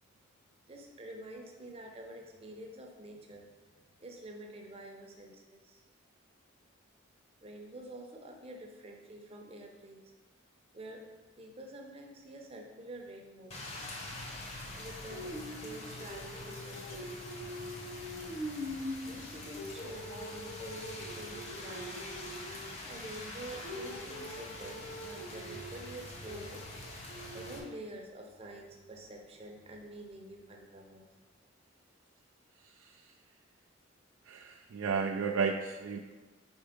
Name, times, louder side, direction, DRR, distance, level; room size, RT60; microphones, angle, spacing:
voice 1, 0.7-5.8 7.4-10.1 10.7-11.0 11.4-13.6 14.8-17.1 19.0-22.2 22.9-26.7 27.3-31.1, right 1 dB, 30° right, 1 dB, 0.7 m, -48 dB
Rain, 13.5-27.6, left 1 dB, 30° left, 0.8 m, -42 dB
voice 2, 34.3-36.0, right 5 dB, 80° right, 2 dB, 0.4 m, -33 dB
4.5 x 4.5 x 5.1 m, 1.3 s
head